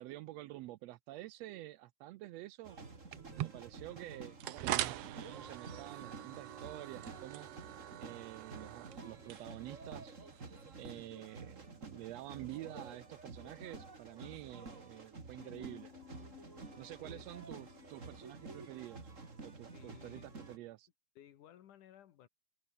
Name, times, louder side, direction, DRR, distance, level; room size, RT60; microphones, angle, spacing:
voice 1, 0.0-2.8 3.4-7.5 8.0-10.1 10.8-15.9 16.8-19.0 19.4-20.9, right 16 dB, 80° right, 1.5 m, -49 dB
sound 1, 2.6-20.6, right 3 dB, 25° right, 3.2 m, -51 dB
sound 2, 3.1-11.0, right 13 dB, 65° right, 1.8 m, -43 dB
sound 3, 15.4-20.7, left 11 dB, 55° left, 1.9 m, -60 dB
voice 2, 16.9-17.3 19.6-20.4 21.2-22.3, left 11 dB, 85° left, 3.0 m, -58 dB
omnidirectional pair, 3.5 m